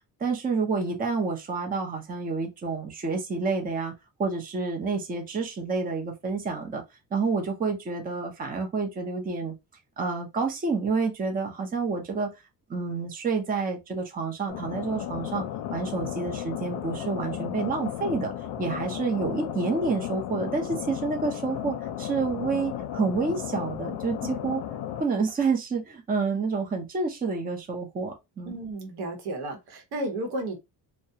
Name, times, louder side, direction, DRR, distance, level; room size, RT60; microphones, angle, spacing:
voice 1, 0.2-3.9 4.2-6.8 7.1-9.5 10.0-12.3 12.7-15.4 15.7-18.3 18.6-24.6 25.0-28.6, right 4 dB, 25° right, 0.5 m, -29 dB
sound 1, 14.5-25.0, left 11 dB, 85° left, 0.5 m, -34 dB
voice 2, 28.5-30.6, right 1 dB, 85° right, 0.9 m, -33 dB
2.3 x 2.0 x 2.7 m
cardioid pair, 130°, 38 cm